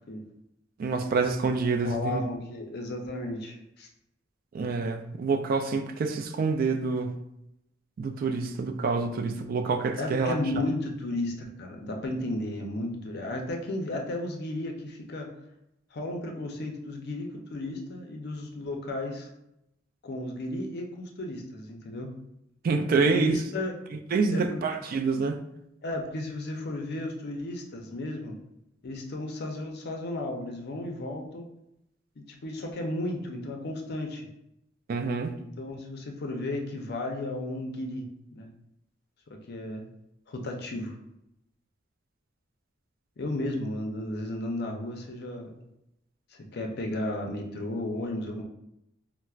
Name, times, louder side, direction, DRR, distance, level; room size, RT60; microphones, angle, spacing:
voice 1, 0.8-2.2 4.5-7.2 8.0-10.3 22.6-23.4 24.1-25.4 34.9-35.3, right 4 dB, 50° right, 6 dB, 0.3 m, -27 dB
voice 2, 1.8-3.9 10.0-15.3 15.9-19.3 20.0-22.1 23.1-23.7 24.3-24.6 25.8-28.4 28.8-31.5 32.2-34.2 35.4-38.1 38.3-38.5 39.5-39.8 40.3-41.0 43.2-45.6 46.3-48.4, left 1 dB, 55° left, 2 dB, 0.5 m, -34 dB
4.3 x 2.0 x 2.3 m, 0.84 s
head